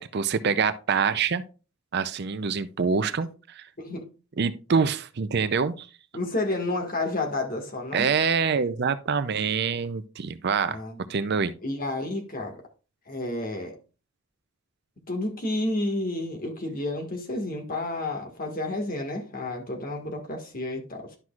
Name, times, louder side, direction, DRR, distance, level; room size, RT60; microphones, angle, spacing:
voice 1, 0.0-1.4 1.9-3.7 4.4-5.9 7.9-10.8 11.1-11.5, right 5 dB, 50° right, 0.5 m, -25 dB
voice 2, 6.1-8.1 10.6-11.0 11.6-12.6 13.1-13.7 15.1-21.2, left 2 dB, 45° left, 1.7 m, -30 dB
11.0 x 6.0 x 2.4 m
head